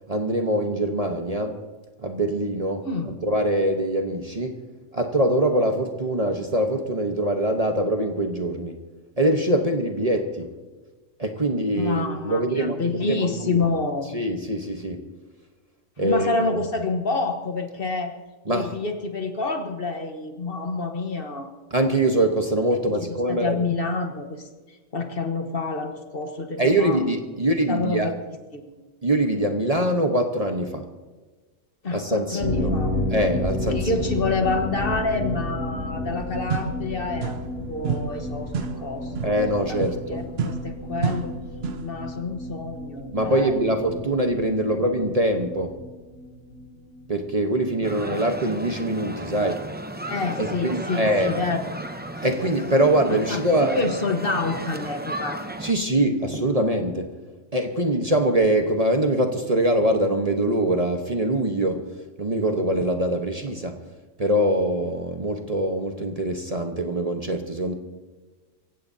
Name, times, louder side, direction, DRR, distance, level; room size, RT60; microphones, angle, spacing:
voice 1, 0.1-1.6 2.0-2.9 3.2-4.6 4.9-8.8 9.2-10.5 11.2-13.6 14.1-15.0 16.0-16.4 18.5-18.7 21.7-23.6 26.6-28.1 29.0-30.8 31.9-32.7 33.1-33.9 39.2-40.2 43.1-45.7 47.1-49.7 50.4-51.3 52.2-53.8 55.6-57.1 57.5-61.9 62.2-63.8 64.2-67.7, right 1 dB, 30° right, 4 dB, 1.1 m, -23 dB
voice 2, 2.8-3.2 11.7-14.1 16.0-18.1 18.5-21.5 23.0-27.0 27.7-28.1 28.5-28.8 31.8-33.0 33.7-37.3 37.7-39.3 39.7-41.4 41.8-43.8 47.9-48.0 50.1-51.7 53.1-55.4, left 3 dB, 45° left, 5 dB, 1.4 m, -28 dB
sound 1, 32.4-47.8 48.0-48.1 48.5-48.6, left 1 dB, 60° left, 3.3 m, -31 dB
sound 2, 36.1-36.2 36.5-37.6 37.8-42.0, right 6 dB, 60° right, 0.9 m, -31 dB
sound 3, 47.8-55.7, right 1 dB, 10° right, 0.5 m, -34 dB
25.0 x 16.0 x 2.7 m, 1.3 s
omnidirectional pair, 1.3 m